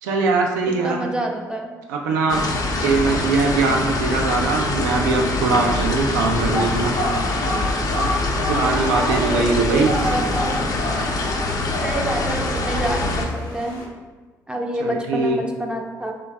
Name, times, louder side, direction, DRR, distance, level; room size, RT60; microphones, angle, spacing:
voice 1, 0.0-1.0 1.9-2.4 2.8-6.9 8.0-8.1 8.5-9.9 14.8-15.4, right 4 dB, 80° right, 1 dB, 0.4 m, -21 dB
voice 2, 0.7-1.7 8.6-10.7 11.8-13.8 14.5-16.1, right 1 dB, 10° right, 1 dB, 0.4 m, -27 dB
sound 1, 2.3-13.3, left 2 dB, 45° left, 0.5 m, -24 dB
sound 2, 6.2-13.8, equal, 65° left, 0.8 m, -30 dB
3.2 x 2.2 x 3.3 m, 1.3 s
hypercardioid pair, 45°, 9 cm